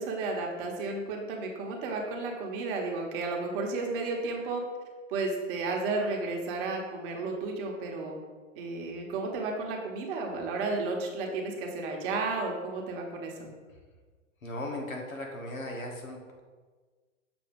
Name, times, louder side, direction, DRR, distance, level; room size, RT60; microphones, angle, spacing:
voice 1, 0.0-4.6 5.1-8.2 8.5-13.5, right 3 dB, 40° right, 1 dB, 1.1 m, -33 dB
voice 2, 14.4-16.4, left 1 dB, 85° left, 1 dB, 1.5 m, -37 dB
7.0 x 2.7 x 5.2 m, 1.4 s
hypercardioid pair, 120°, 40 cm